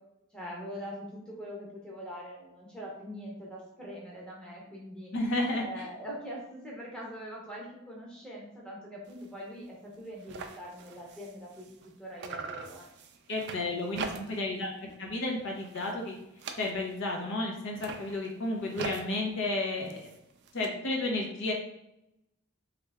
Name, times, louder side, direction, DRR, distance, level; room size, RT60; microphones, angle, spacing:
voice 1, 0.3-5.1 5.5-12.8 13.9-14.3, equal, 5° left, -4 dB, 0.8 m, -43 dB
voice 2, 5.1-5.8 13.3-14.7 15.0-16.2 16.6-20.1 20.5-21.5, left 2 dB, 60° left, 0 dB, 0.6 m, -32 dB
sound 1, 9.1-9.3 9.6-9.7 9.9-11.9 12.2-14.6 14.9-15.3 15.6-17.1 17.6-20.7, right 5 dB, 55° right, 0.3 m, -43 dB
3.2 x 2.4 x 3.3 m, 0.84 s
head